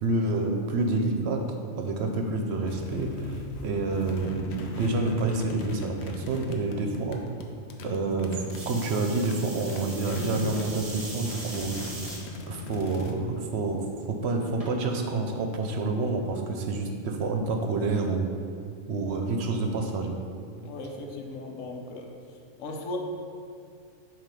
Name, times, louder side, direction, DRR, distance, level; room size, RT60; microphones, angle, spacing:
voice 1, 0.0-1.4 1.8-7.2 7.8-11.9 12.5-18.3 18.9-20.2, right 3 dB, 65° right, 4 dB, 0.8 m, -28 dB
sound 1, 2.7-10.7 11.0-13.1, left 3 dB, 65° left, 0.8 m, -39 dB
sound 2, 8.5-12.2 12.9-13.3 14.6-14.7, right 2 dB, 35° right, 0.8 m, -40 dB
voice 2, 20.6-22.1 22.6-23.0, left 2 dB, 85° left, 2 dB, 1.1 m, -37 dB
7.3 x 2.8 x 5.2 m, 2.4 s
omnidirectional pair, 1.3 m